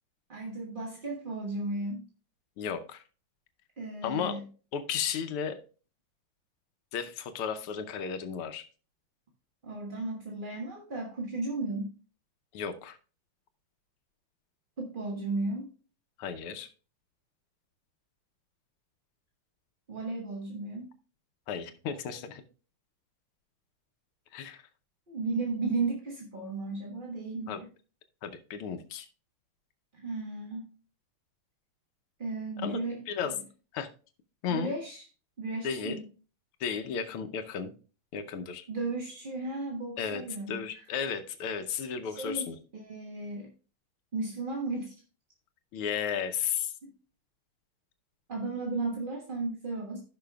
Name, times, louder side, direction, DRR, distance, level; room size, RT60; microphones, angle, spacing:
voice 1, 0.3-2.1 3.8-4.4 9.6-11.9 14.8-15.7 19.9-20.9 25.1-27.7 29.9-30.6 32.2-33.4 34.5-35.0 35.4-36.0 38.7-40.8 42.0-43.5 44.1-45.0 46.8-46.9 48.3-50.0, right 3 dB, 30° right, -1 dB, 1.1 m, -35 dB
voice 2, 2.6-3.0 4.0-4.4 4.7-5.6 6.9-8.7 12.5-13.0 16.2-16.7 21.5-22.4 24.3-24.6 27.5-27.6 28.2-29.1 32.6-32.8 33.1-33.4 33.7-33.9 34.4-34.7 35.6-36.0 36.6-37.7 38.1-38.6 40.0-40.2 40.5-42.5 45.7-46.7, left 7 dB, 85° left, 8 dB, 1.7 m, -34 dB
15.5 x 5.8 x 2.3 m, 0.37 s
omnidirectional pair, 2.3 m